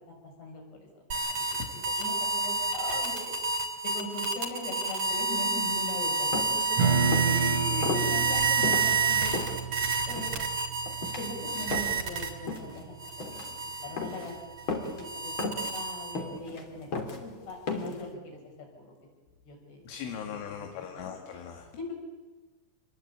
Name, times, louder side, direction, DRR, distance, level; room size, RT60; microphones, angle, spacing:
voice 1, 0.2-0.6 1.3-1.4 1.7-3.3 3.9-6.8 7.9-9.5 10.1-10.3 11.2-13.5 13.8-14.4 14.8-18.4 18.8-18.9 19.5-19.9 20.3-21.1 21.8-21.9, left 2 dB, 55° left, 1 dB, 8.8 m, -40 dB
sound 1, 1.1-12.6 13.0-16.4, right 4 dB, 35° right, 3.8 m, -30 dB
voice 2, 1.6-2.1 6.9-7.9 19.9-21.7, left 7 dB, 70° left, 3 dB, 4.4 m, -39 dB
sound 2, 6.3-6.6 7.1-7.4 7.8-8.1 8.6-9.6 10.1-10.4 10.9-11.3 11.7-12.1 12.5-12.8 13.1-13.5 14.0-14.3 14.7-15.0 15.4-15.7 16.2-16.6 16.9-17.2 17.7-18.0, left 3 dB, 30° left, 2.9 m, -34 dB
Strum, 6.8-13.6, right 6 dB, 75° right, 4.5 m, -32 dB
27.5 x 22.5 x 8.8 m, 1.2 s
omnidirectional pair, 5.9 m